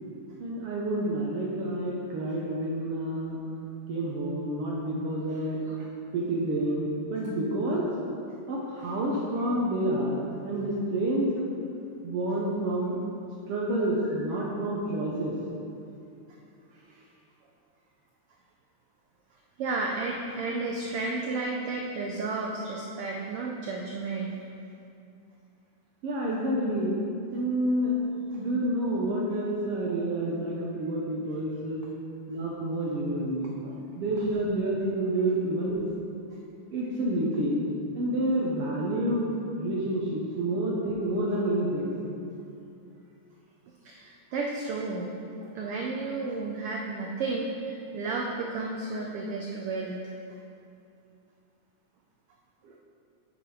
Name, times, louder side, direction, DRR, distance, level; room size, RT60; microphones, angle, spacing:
voice 1, 0.4-3.4 3.9-5.6 6.1-7.9 8.5-11.4 12.0-13.1 13.5-15.3 26.0-26.9 27.3-27.9 28.3-31.8 32.3-33.6 34.0-35.9 36.7-37.6 37.9-39.3 39.6-41.9, right 1 dB, 65° right, -4 dB, 1.6 m, -29 dB
voice 2, 16.7-17.0 19.6-24.4 33.6-33.9 43.8-45.1 45.4-50.0 52.6-52.8, right 3 dB, 90° right, -1 dB, 1.2 m, -32 dB
9.9 x 6.0 x 4.8 m, 2.6 s
omnidirectional pair, 3.4 m